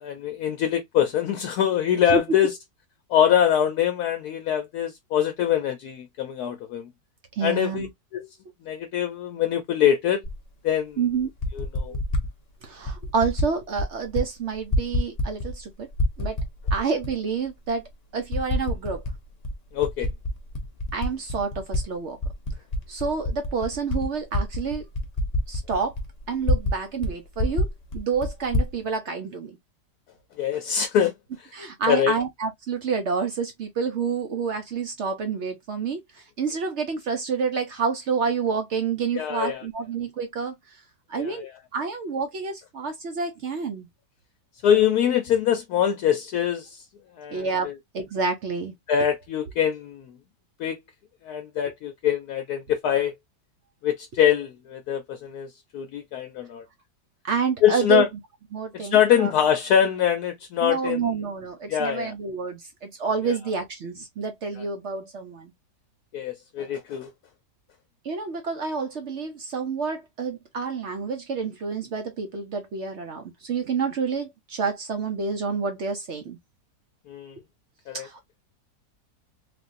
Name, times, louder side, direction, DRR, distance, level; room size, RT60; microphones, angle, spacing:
voice 1, 0.0-2.6 3.1-6.9 7.4-7.9 8.1-8.3 8.6-10.2 10.6-11.0 11.5-11.9 19.7-20.1 30.4-31.1 31.4-31.5 31.9-32.1 39.1-39.6 41.2-41.5 44.6-46.8 47.2-47.7 48.9-50.1 50.6-50.8 51.2-53.1 53.8-56.6 57.6-58.1 58.7-61.2 61.7-62.1 63.2-63.3 66.1-67.1 77.1-77.4 77.9-78.1, left 9 dB, 75° left, 1.1 m, -24 dB
voice 2, 7.4-7.9 11.0-11.3 11.9-12.0 12.6-15.9 16.2-16.4 16.7-19.0 20.9-22.2 22.9-24.8 25.5-26.0 26.3-27.7 27.9-29.6 31.5-40.6 41.1-41.5 41.7-43.9 47.3-47.7 47.9-48.7 57.2-58.0 58.5-59.3 60.6-65.5 68.0-76.4 77.9-78.2, right 5 dB, 60° right, 0.8 m, -28 dB
Typing, 10.2-10.4 11.2-12.3 12.9-13.5 13.8-14.3 14.5-15.6 15.9-17.1 17.7-17.8 18.3-19.2 19.4-21.8 22.2-26.8 27.0-27.1 27.4-28.7, left 1 dB, 40° left, 0.6 m, -26 dB
3.4 x 2.5 x 2.5 m
omnidirectional pair, 1.8 m